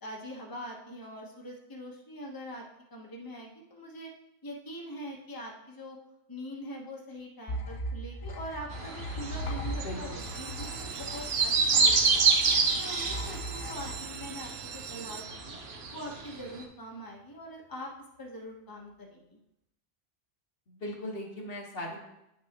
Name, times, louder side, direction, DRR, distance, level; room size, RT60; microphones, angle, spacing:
voice 1, 0.0-2.6 2.9-4.1 4.4-6.0 6.3-12.3 12.7-15.6 15.9-17.9 18.2-19.4, equal, 20° left, -1 dB, 1.0 m, -43 dB
sound 1, 7.5-15.0, equal, 40° left, 0.5 m, -39 dB
sound 2, 8.7-16.3 16.6-16.7, right 4 dB, 75° right, 1.1 m, -28 dB
voice 2, 9.8-10.3 20.7-22.1, left 1 dB, 65° left, -1 dB, 1.5 m, -39 dB
sound 3, 10.1-15.8 16.4-16.9 17.3-17.4 17.6-17.7 18.2-18.3, right 8 dB, 55° right, 0.5 m, -44 dB
9.2 x 6.1 x 2.9 m, 0.85 s
omnidirectional pair, 1.1 m